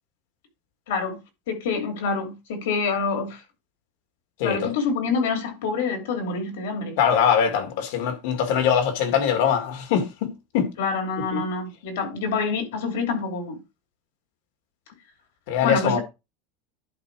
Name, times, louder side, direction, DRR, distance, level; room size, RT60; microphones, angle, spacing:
voice 1, 0.9-1.2 1.5-3.4 4.4-7.0 10.8-13.6 15.6-16.0, left 4 dB, 80° left, 2.8 m, -26 dB
voice 2, 4.4-4.7 7.0-10.7 11.3-11.4 15.5-16.0, left 8 dB, 65° left, 1.9 m, -22 dB
11.0 x 4.0 x 4.7 m
supercardioid pair, 165°, 0 cm